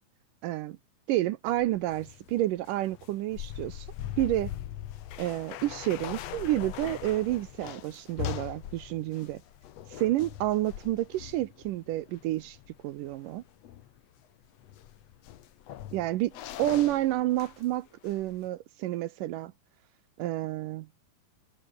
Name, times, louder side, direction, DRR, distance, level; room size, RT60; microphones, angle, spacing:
voice 1, 0.4-0.8 1.1-3.9 4.2-4.5 5.2-9.4 9.9-12.6 12.8-13.4 15.9-16.3 16.6-19.5 20.2-20.9, right 15 dB, 75° right, 2.2 m, -29 dB
sound 1, 1.5-17.8 18.0-18.5, left 12 dB, 65° left, 1.7 m, -42 dB
omnidirectional pair, 4.3 m